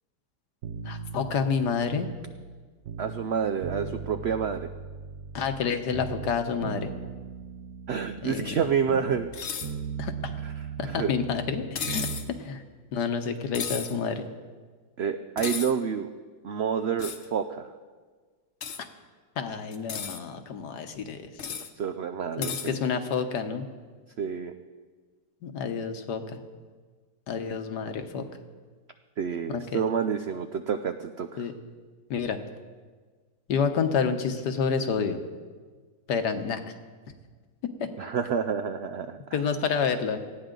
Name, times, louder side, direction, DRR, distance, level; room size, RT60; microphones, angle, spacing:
sound 1, 0.6-3.3 3.6-5.7 5.9-9.4 9.6-12.2 12.5-12.6, right 6 dB, 60° right, 1.3 m, -38 dB
voice 1, 0.8-2.1 5.3-6.9 8.2-8.6 10.0-10.1 10.8-12.1 12.4-12.6 12.9-14.2 19.4-21.2 21.5-21.6 22.4-23.7 25.4-26.4 27.3-28.3 29.5-29.8 31.4-31.5 32.1-32.4 33.5-35.2 36.1-36.6 37.8-37.9 39.3-40.2, left 6 dB, 75° left, 7 dB, 1.6 m, -29 dB
voice 2, 3.0-4.7 7.9-9.3 10.4-10.5 10.8-11.1 15.0-16.1 16.4-17.7 21.8-22.8 24.2-24.6 29.2-31.5 38.0-39.2, right 7 dB, 85° right, 8 dB, 0.5 m, -29 dB
sound 2, 9.3-9.7 11.8-12.3 13.5-13.9 15.4-15.7 17.0-17.3 18.6-18.8 19.7-20.2 21.4-21.7 22.4-22.7, left 7 dB, 50° left, 1.0 m, -34 dB
18.5 x 14.5 x 3.9 m, 1.5 s
omnidirectional pair, 1.8 m